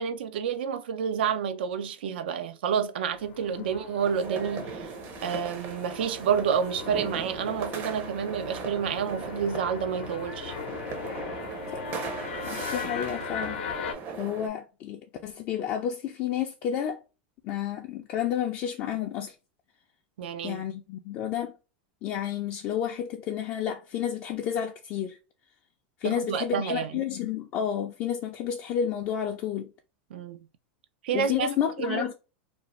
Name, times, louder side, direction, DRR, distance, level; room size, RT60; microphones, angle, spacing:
voice 1, 0.0-4.9 5.2-10.6 20.2-20.6 26.0-27.0 30.1-30.5 31.0-31.5 31.8-32.1, right 7 dB, 85° right, 0.4 m, -29 dB
sound 1, 3.0-13.9, left 6 dB, 90° left, 0.6 m, -39 dB
sound 2, 4.0-14.5, right 4 dB, 40° right, 0.6 m, -39 dB
voice 2, 12.4-13.6 14.2-17.0 17.4-19.3 20.4-21.5 22.0-25.2 26.0-29.7 31.1-32.1, left 9 dB, 40° left, 0.4 m, -31 dB
2.5 x 2.0 x 3.0 m
supercardioid pair, 125°, 6 cm